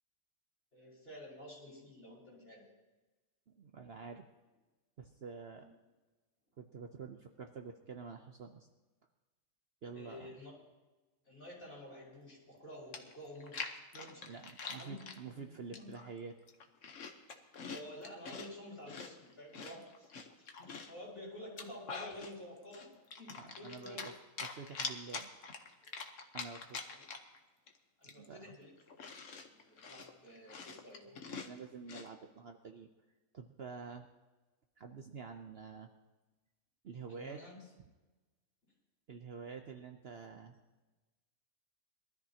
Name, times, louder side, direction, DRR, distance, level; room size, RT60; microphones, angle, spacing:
voice 1, 0.7-2.7 5.5-5.7 9.9-10.5 11.2-14.2 14.7-14.9 15.3-15.4 15.7-15.9 17.3-20.1 20.4-22.9 23.2-24.1 26.8-27.0 28.0-28.7 29.4-31.1 37.1-37.5, left 1 dB, 45° left, -4 dB, 5.8 m, -51 dB
voice 2, 3.5-4.2 5.0-5.7 6.6-8.7 9.8-10.4 14.2-16.4 23.4-24.1 24.4-25.3 25.8-26.0 26.3-26.8 28.0-28.5 31.4-32.9 33.3-34.1 34.8-35.9 36.8-37.7 39.1-40.6, right 5 dB, 50° right, 5 dB, 0.9 m, -48 dB
Chewing mastication, 12.6-12.7 12.9-15.2 15.7-16.1 16.4-18.5 18.9-21.0 21.4-22.3 22.7-24.1 24.4-27.4 27.7-27.8 28.0-32.1, left 5 dB, 65° left, 1.4 m, -45 dB
22.0 x 13.5 x 2.9 m, 1.2 s
omnidirectional pair, 1.5 m